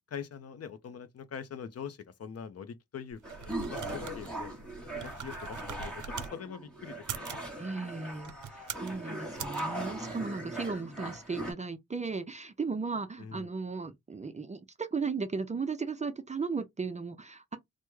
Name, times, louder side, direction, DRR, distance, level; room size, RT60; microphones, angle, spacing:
voice 1, 0.1-3.2 3.7-4.5 4.9-7.5 13.2-13.5, left 7 dB, 55° left, 0.5 m, -43 dB
sound 1, 3.1-6.3 6.9-7.5 8.2-8.9 9.3-9.6, right 8 dB, 80° right, 0.5 m, -42 dB
sound 2, 3.2-11.5, right 1 dB, 5° left, 0.8 m, -39 dB
voice 2, 7.6-8.3 8.8-17.6, right 4 dB, 25° right, 0.4 m, -36 dB
3.4 x 2.1 x 3.1 m
wide cardioid pair, 165°, 30 cm